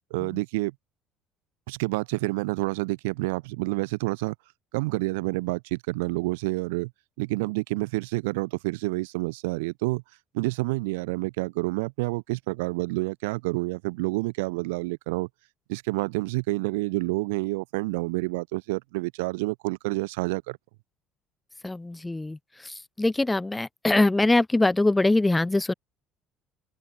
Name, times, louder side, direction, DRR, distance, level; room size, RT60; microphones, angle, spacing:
voice 1, 0.1-0.7 1.7-4.3 4.7-6.9 7.2-10.0 10.3-15.3 15.7-20.6, right 24 dB, 85° right, 2.8 m, -28 dB
voice 2, 21.6-22.4 23.0-25.7, left 2 dB, 15° left, 0.8 m, -22 dB
supercardioid pair, 80°, 0 cm